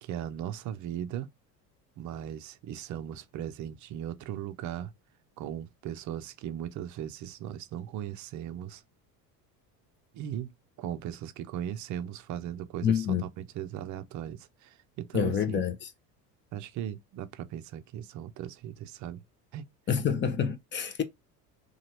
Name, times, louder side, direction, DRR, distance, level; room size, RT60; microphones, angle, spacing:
voice 1, 0.0-1.3 2.0-4.9 5.4-8.8 10.1-10.5 10.8-15.6 16.5-19.2 19.5-19.6, right 10 dB, 40° right, 0.5 m, -38 dB
voice 2, 12.8-13.2 15.1-15.9 19.9-21.0, left 8 dB, 25° left, 0.5 m, -27 dB
2.9 x 2.4 x 2.8 m
hypercardioid pair, 75°, 49 cm